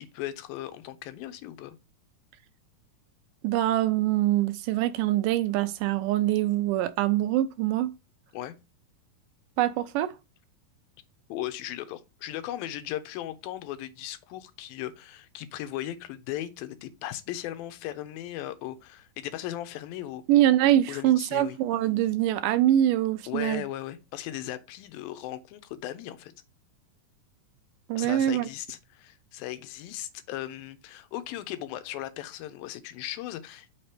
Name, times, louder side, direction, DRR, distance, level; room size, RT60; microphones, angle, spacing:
voice 1, 0.0-1.8 8.3-8.6 11.3-20.2 20.9-21.6 23.3-26.3 28.0-33.7, left 13 dB, 85° left, 2.6 m, -37 dB
voice 2, 3.4-7.9 9.6-10.1 20.3-23.6 27.9-28.5, right 13 dB, 80° right, 2.0 m, -24 dB
6.1 x 4.4 x 4.9 m
omnidirectional pair, 4.1 m